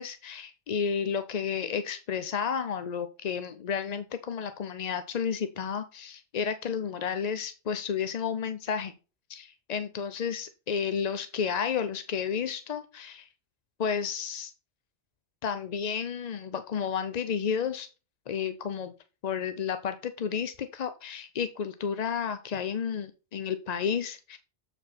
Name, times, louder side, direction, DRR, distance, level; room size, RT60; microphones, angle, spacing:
voice 1, 0.0-8.9 9.3-13.3 13.8-14.5 15.4-17.9 18.3-18.9 19.2-24.4, left 7 dB, 50° left, 10 dB, 0.5 m, -32 dB
7.8 x 4.7 x 4.3 m, 0.33 s
omnidirectional pair, 1.2 m